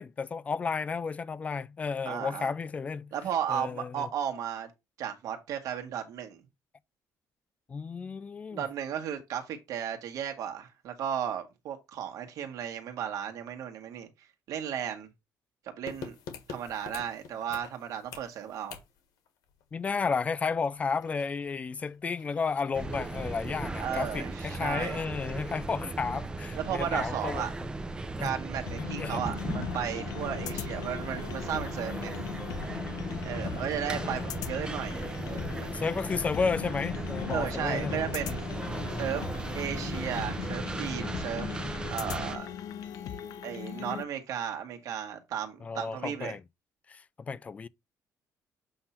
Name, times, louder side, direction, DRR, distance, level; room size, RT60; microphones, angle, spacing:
voice 1, 0.0-3.1 3.5-4.1 7.7-8.6 19.7-27.5 28.2-28.3 28.8-29.2 33.4-34.3 35.7-38.0 38.6-39.3 45.6-46.4 46.9-47.7, left 5 dB, 20° left, 0.3 m, -33 dB
voice 2, 2.0-2.5 3.1-4.7 5.0-6.4 8.5-14.1 14.5-15.1 15.6-16.1 16.5-18.8 23.8-25.0 26.5-27.5 28.2-32.2 33.2-35.7 37.3-38.4 38.9-39.2 39.5-41.5 41.9-42.5 43.4-46.3, right 9 dB, 65° right, 1.6 m, -35 dB
sound 1, 15.9-26.3 26.6-26.7, left 6 dB, 85° left, 1.7 m, -50 dB
sound 2, 22.7-42.4, right 2 dB, 15° right, 0.7 m, -37 dB
sound 3, 28.7-44.0, left 11 dB, 70° left, 0.7 m, -39 dB
7.9 x 2.8 x 5.7 m
cardioid pair, 165°, 6 cm